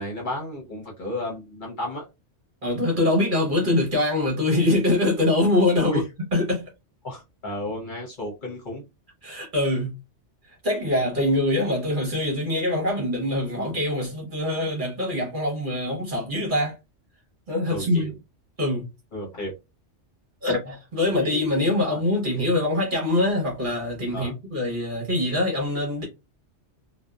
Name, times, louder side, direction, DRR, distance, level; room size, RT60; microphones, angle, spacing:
voice 1, 0.0-2.0 5.8-6.0 7.0-8.8 17.7-18.1 19.1-19.5 21.0-22.0 24.1-24.3, left 1 dB, 45° left, 0.8 m, -33 dB
voice 2, 2.6-6.0 6.3-6.7 9.2-10.0 10.5-16.8 17.5-18.1 18.6-18.9 20.4-26.1, left 1 dB, 45° right, 1.1 m, -24 dB
2.6 x 2.2 x 2.2 m
omnidirectional pair, 1.3 m